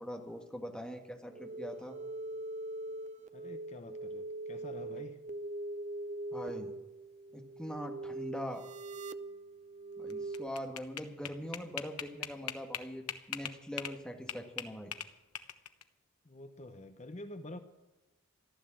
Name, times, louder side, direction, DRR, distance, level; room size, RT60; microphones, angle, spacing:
voice 1, 0.0-2.0 6.3-6.7 7.3-8.6 10.0-14.9, equal, 5° left, 2 dB, 1.7 m, -42 dB
sound 1, 1.3-10.5, right 2 dB, 30° right, 0.5 m, -42 dB
voice 2, 3.3-5.2 16.2-17.6, left 1 dB, 30° left, 8 dB, 0.8 m, -47 dB
sound 2, 10.1-14.0 14.3-15.8, left 9 dB, 90° left, 1.2 m, -40 dB
15.0 x 12.0 x 7.6 m, 1.1 s
head